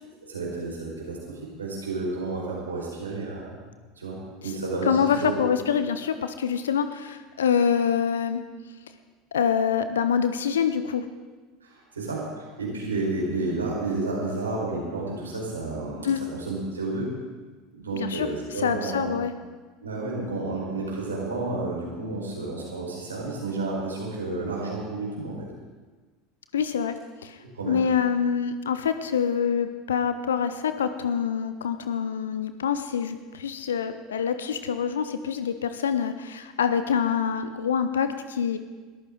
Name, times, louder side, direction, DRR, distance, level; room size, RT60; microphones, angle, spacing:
voice 1, 0.2-3.5 4.0-4.2 4.4-5.3 11.6-17.1 17.7-19.1 19.8-25.4 27.4-27.8, right 3 dB, 80° right, -3 dB, 4.9 m, -31 dB
voice 2, 4.8-8.4 9.3-11.1 16.0-16.2 17.9-18.3 18.6-19.3 26.5-26.9 27.2-27.4 27.7-38.6, left 7 dB, 75° left, 10 dB, 0.7 m, -25 dB
21.5 x 14.0 x 3.9 m, 1.3 s
figure-of-eight pair, 75°, 0 cm